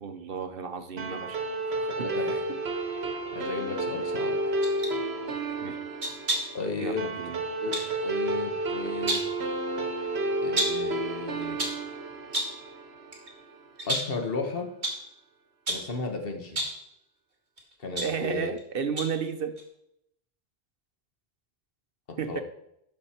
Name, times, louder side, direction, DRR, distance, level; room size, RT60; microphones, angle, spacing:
voice 1, 0.0-1.9 5.6-5.8 6.8-7.4 18.0-19.6 22.2-22.4, right 6 dB, 60° right, 9 dB, 0.9 m, -33 dB
sound 1, 1.0-13.7, right 2 dB, 80° right, 1.3 m, -31 dB
voice 2, 1.9-2.4 3.3-4.3 6.5-7.1 7.6-9.2 10.4-11.6 13.8-14.7 15.7-16.6 17.8-18.5 22.1-22.4, left 3 dB, 60° left, 4 dB, 1.5 m, -34 dB
sound 2, 4.6-5.0 6.0-6.6 7.7-7.9 8.8-9.4 10.6-10.9 11.4-11.9 12.3-12.6 13.1-13.3 13.8-14.2 14.8-15.1 15.7-16.0 16.5-16.8 17.6-18.6 19.0-19.2 19.6-19.7, right 1 dB, 45° right, 2.0 m, -31 dB
12.0 x 5.4 x 4.3 m, 0.78 s
omnidirectional pair, 1.1 m